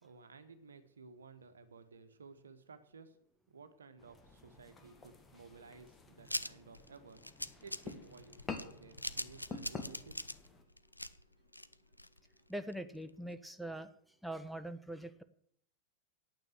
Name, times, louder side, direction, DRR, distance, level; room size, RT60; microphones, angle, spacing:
voice 1, 0.0-3.2 3.5-10.1, right 4 dB, 70° right, 10 dB, 1.3 m, -56 dB
sound 1, 4.0-10.6, left 4 dB, 15° left, 1.7 m, -49 dB
sound 2, 6.2-12.4 12.7-12.8 13.1-13.2, left 1 dB, 85° left, 0.5 m, -42 dB
voice 2, 12.5-13.9 14.2-15.2, right 1 dB, ahead, 10 dB, 0.7 m, -42 dB
9.1 x 8.9 x 8.0 m, 0.67 s
figure-of-eight pair, 90°, 0 cm